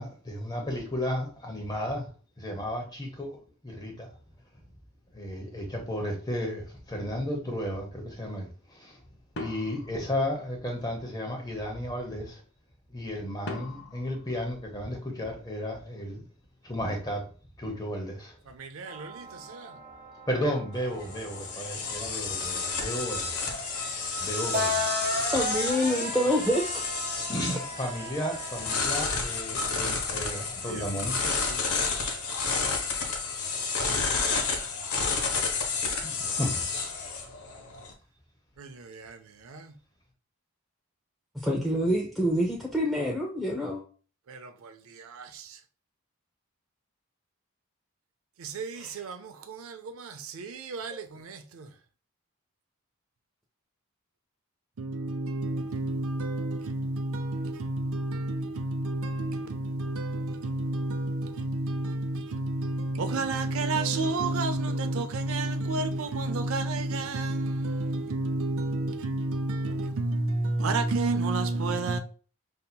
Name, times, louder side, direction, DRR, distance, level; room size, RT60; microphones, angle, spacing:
voice 1, 0.0-2.1 2.4-3.4 3.6-4.1 5.1-9.0 9.4-12.4 12.9-16.2 16.6-17.2 17.6-18.3 20.3-23.5 24.2-25.0 27.3-31.2 36.0-36.6, equal, 20° left, 0.8 m, -33 dB
sound 1, 9.4-10.9 13.5-15.3, left 1 dB, 55° left, 0.8 m, -42 dB
voice 2, 18.6-19.7 30.7-30.8 31.2-31.6 38.6-39.2 39.5-39.7 44.3-44.7 45.0-45.5 48.4-51.7 54.8-72.0, right 2 dB, 70° right, 0.5 m, -31 dB
sound 2, 18.9-29.2, left 1 dB, 40° right, 0.8 m, -36 dB
sound 3, 20.7-37.9, left 4 dB, 85° left, 0.9 m, -31 dB
voice 3, 25.2-26.9 31.2-31.5 41.4-43.8 48.7-49.0 50.9-51.0, equal, ahead, 0.3 m, -27 dB
5.3 x 2.8 x 2.2 m
head